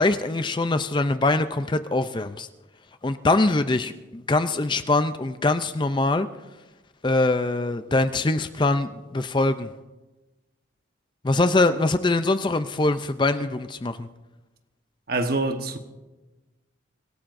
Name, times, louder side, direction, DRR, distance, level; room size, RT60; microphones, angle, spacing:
voice 1, 0.0-2.5 3.0-6.3 7.0-9.7 11.2-14.1, left 2 dB, 25° left, 0.5 m, -23 dB
voice 2, 15.1-15.8, right 2 dB, 50° right, 1.2 m, -25 dB
25.5 x 17.0 x 2.6 m
head